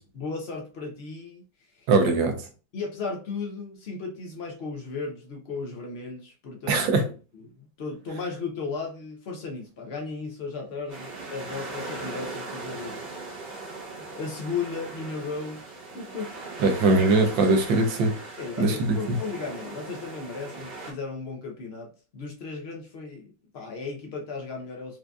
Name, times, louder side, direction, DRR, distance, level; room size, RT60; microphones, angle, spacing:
voice 1, 0.1-1.4 1.7-1.9 2.7-13.0 13.9-16.3 18.4-25.0, left 4 dB, 85° left, 0.5 m, -35 dB
voice 2, 1.9-2.3 6.7-7.0 16.6-18.1 18.6-19.2, right 3 dB, 80° right, 1.5 m, -21 dB
sound 1, 10.9-20.9, right 3 dB, 35° right, 0.7 m, -39 dB
4.7 x 2.6 x 2.3 m
omnidirectional pair, 2.0 m